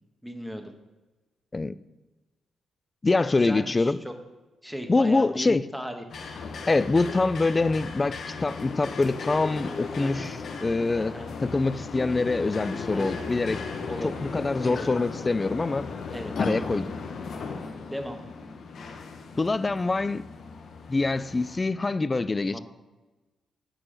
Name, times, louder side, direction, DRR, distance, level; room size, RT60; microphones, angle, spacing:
voice 1, 0.2-0.7 3.3-4.1 4.6-6.0 10.0-10.3 10.9-11.3 12.9-13.2 13.9-14.3 14.7-14.9 16.1-16.3 17.9-18.2 22.4-22.6, equal, 5° right, 5 dB, 1.3 m, -37 dB
voice 2, 3.0-4.0 4.9-5.6 6.7-11.1 11.4-13.6 14.0-15.9 16.4-16.9 19.4-20.2 20.9-22.6, left 3 dB, 30° left, 16 dB, 0.3 m, -25 dB
sound 1, 6.1-21.6, left 4 dB, 65° left, 0.8 m, -36 dB
5.7 x 4.8 x 6.5 m, 1.2 s
supercardioid pair, 50°, 0 cm